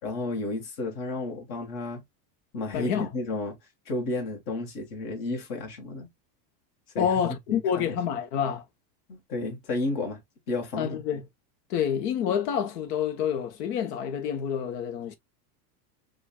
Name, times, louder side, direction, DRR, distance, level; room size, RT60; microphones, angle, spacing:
voice 1, 0.0-2.0 2.5-3.6 3.8-6.1 6.9-8.0 9.1-10.2 10.5-11.0, left 2 dB, 45° left, 1.6 m, -32 dB
voice 2, 2.7-3.1 7.0-8.6 10.8-11.3 11.7-15.2, left 8 dB, 75° left, 1.1 m, -28 dB
5.1 x 2.6 x 2.3 m
supercardioid pair, 165°, 49 cm